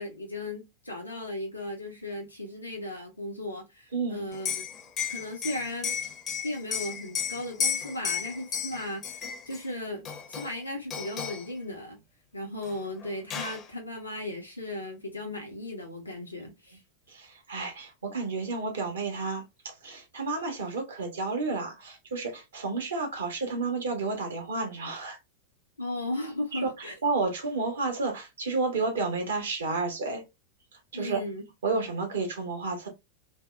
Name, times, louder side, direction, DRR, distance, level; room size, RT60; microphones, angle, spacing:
voice 1, 0.0-4.6 5.1-6.0 6.4-12.0 12.3-16.8 25.8-27.0 30.9-31.5, left 1 dB, 80° left, 0.5 m, -36 dB
voice 2, 3.9-4.3 17.1-25.2 26.5-30.2 30.9-31.2 31.6-32.9, right 3 dB, 65° right, 0.9 m, -31 dB
Liquid, 4.3-9.6 10.1-10.6 10.9-11.5 12.7-12.8 13.0-13.6, left 7 dB, 30° left, 0.5 m, -33 dB
2.6 x 2.0 x 2.2 m
figure-of-eight pair, 90°, 0 cm